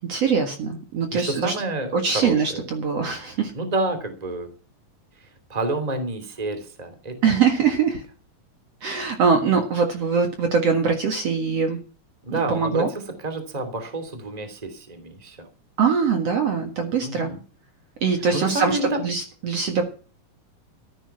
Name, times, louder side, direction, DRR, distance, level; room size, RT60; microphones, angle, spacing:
voice 1, 0.1-1.5 1.9-3.5 7.2-8.0 8.8-11.8 12.3-12.9 15.8-17.3 18.0-19.9, right 5 dB, 55° right, 5 dB, 2.6 m, -22 dB
voice 2, 1.1-2.6 3.5-4.5 5.5-7.4 12.2-12.9 13.2-15.5 17.0-17.4 18.3-19.0, right 2 dB, 15° right, 8 dB, 2.5 m, -29 dB
14.5 x 10.5 x 5.9 m, 0.38 s
omnidirectional pair, 3.8 m